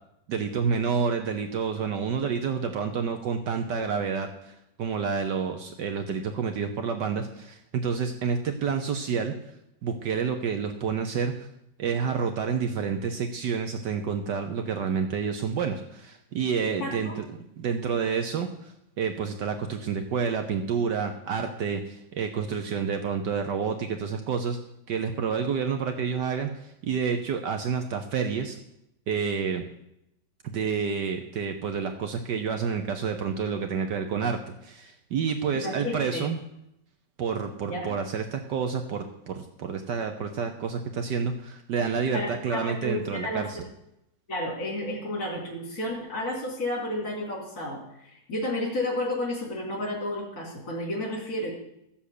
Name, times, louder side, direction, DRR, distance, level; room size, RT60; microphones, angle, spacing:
voice 1, 0.3-9.3 9.8-11.5 11.8-17.3 17.6-24.6 24.9-28.6 29.1-29.6 30.4-36.4 37.2-43.6, right 6 dB, 70° right, 6 dB, 1.5 m, -29 dB
voice 2, 16.8-17.2 35.5-36.3 37.7-37.9 42.1-43.5 44.3-51.5, left 1 dB, 50° left, -3 dB, 3.8 m, -31 dB
15.5 x 7.2 x 8.4 m, 0.81 s
omnidirectional pair, 2.0 m